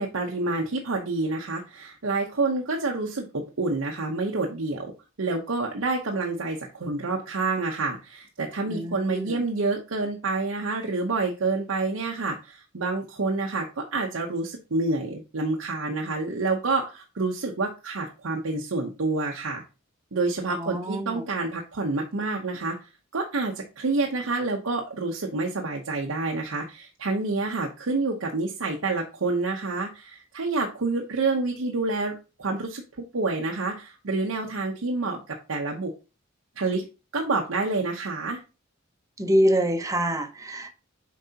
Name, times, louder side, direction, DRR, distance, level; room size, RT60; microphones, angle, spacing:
voice 1, 0.0-4.9 5.2-19.6 20.1-32.8 33.1-35.9 36.6-36.9 37.1-38.4, right 3 dB, 85° right, 0.8 m, -28 dB
voice 2, 8.7-9.4 20.5-21.2 39.2-40.7, equal, 15° right, 0.8 m, -25 dB
7.5 x 4.7 x 2.8 m
head